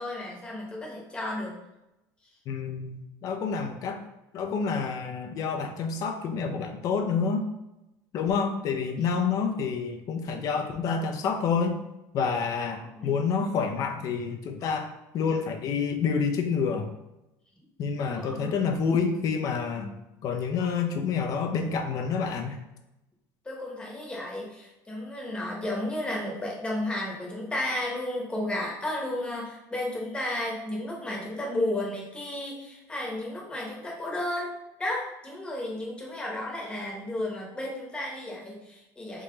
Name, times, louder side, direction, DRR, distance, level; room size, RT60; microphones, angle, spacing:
voice 1, 0.0-1.5 13.0-13.1 18.0-18.5 23.4-34.5 34.8-39.2, left 1 dB, 15° left, -2 dB, 1.1 m, -33 dB
voice 2, 2.5-4.0 4.3-7.5 8.1-11.8 12.1-16.9 17.8-19.9 20.2-22.6, left 5 dB, 50° left, 5 dB, 0.6 m, -28 dB
3.7 x 3.0 x 3.9 m, 0.93 s
cardioid pair, 135°, 8 cm